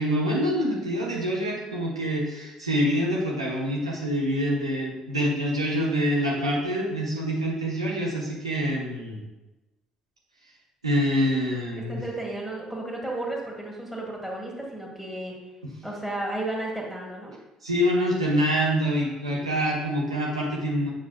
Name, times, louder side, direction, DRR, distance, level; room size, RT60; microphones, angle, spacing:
voice 1, 0.0-9.2 10.8-12.0 17.6-20.9, equal, 85° right, -5 dB, 1.1 m, -26 dB
voice 2, 11.9-15.4 15.8-17.3, right 2 dB, ahead, -2 dB, 1.9 m, -33 dB
7.4 x 5.8 x 2.4 m, 1.0 s
figure-of-eight pair, 50°, 3 cm